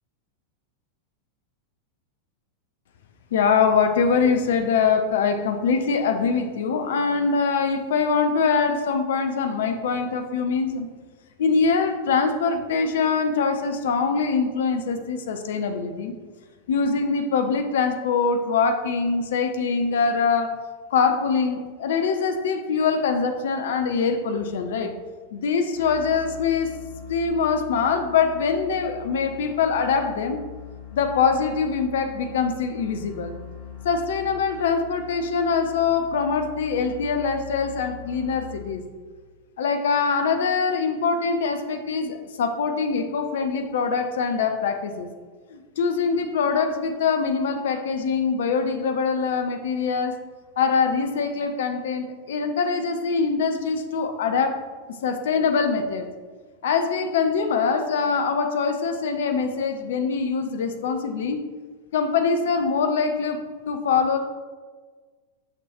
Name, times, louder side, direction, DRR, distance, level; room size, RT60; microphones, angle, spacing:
voice 1, 3.3-10.9 11.4-16.1 16.7-20.6 20.9-24.9 25.3-26.7 27.1-30.4 30.9-33.3 33.8-38.8 39.6-45.1 45.5-50.2 50.6-54.6 55.0-56.1 56.6-61.4 61.9-64.2, left 5 dB, 60° left, 7 dB, 0.5 m, -23 dB
sound 1, 25.7-39.1, left 9 dB, 45° left, 1.0 m, -42 dB
6.5 x 6.3 x 2.9 m, 1.5 s
figure-of-eight pair, 90°, 0 cm